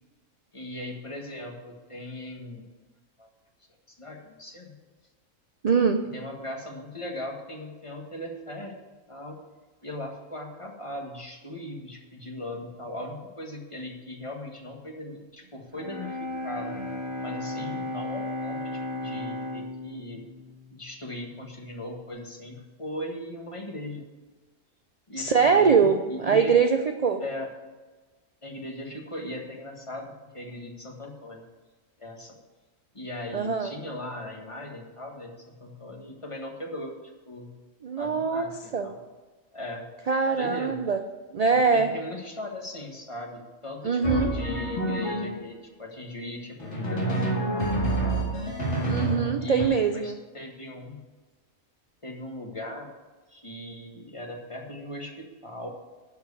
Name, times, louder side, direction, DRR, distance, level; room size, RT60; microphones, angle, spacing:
voice 1, 0.5-2.6 3.2-3.3 3.9-4.7 6.1-8.8 9.1-9.4 9.8-16.8 17.2-20.2 20.7-24.1 25.1-26.6 27.2-27.5 28.4-31.4 32.0-32.3 32.9-36.9 37.2-37.5 38.0-39.0 39.5-39.9 40.3-40.8 41.4-47.7 48.0-48.9 49.4-51.0 52.0-52.9 53.3-55.7, left 1 dB, 25° left, 1 dB, 1.5 m, -38 dB
voice 2, 5.6-6.0 25.2-27.2 33.3-33.7 37.8-38.9 40.1-41.0 41.3-41.9 43.8-44.3 48.9-50.1, right 5 dB, 55° right, 7 dB, 0.4 m, -23 dB
Bowed string instrument, 15.7-21.7, left 2 dB, 40° right, 1.5 m, -35 dB
Drum, 44.0-45.5 46.6-49.7, right 1 dB, 55° left, 2.2 m, -28 dB
11.5 x 4.7 x 8.3 m, 1.3 s
omnidirectional pair, 1.4 m